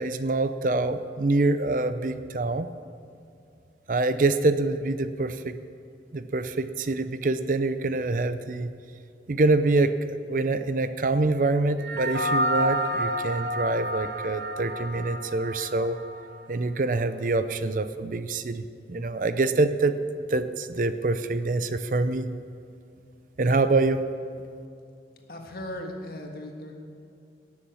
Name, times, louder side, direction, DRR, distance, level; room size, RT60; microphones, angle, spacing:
voice 1, 0.0-2.7 3.9-5.6 6.1-8.7 9.3-9.9 10.3-16.0 16.5-18.6 18.9-19.9 20.3-22.3 23.4-24.0, right 2 dB, 50° right, 11 dB, 0.5 m, -25 dB
sound 1, 11.8-16.5, equal, 85° right, 0.8 m, -29 dB
voice 2, 25.3-26.7, left 1 dB, 55° left, 2 dB, 1.7 m, -37 dB
18.5 x 7.1 x 6.3 m, 2.5 s
head